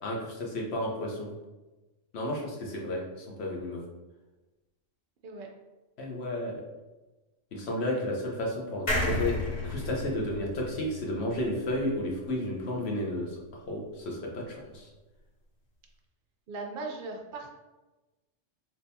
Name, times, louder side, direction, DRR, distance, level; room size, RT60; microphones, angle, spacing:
voice 1, 0.0-1.3 2.1-3.8 6.0-6.6 7.5-9.4 9.6-14.9, left 1 dB, 60° left, -2 dB, 1.0 m, -32 dB
sound 1, 8.9-12.3 12.7-12.8 13.0-13.1, left 1 dB, 35° left, 0.9 m, -33 dB
voice 2, 16.5-17.5, right 3 dB, 60° right, 1 dB, 0.6 m, -38 dB
3.6 x 2.9 x 2.6 m, 1.1 s
omnidirectional pair, 1.3 m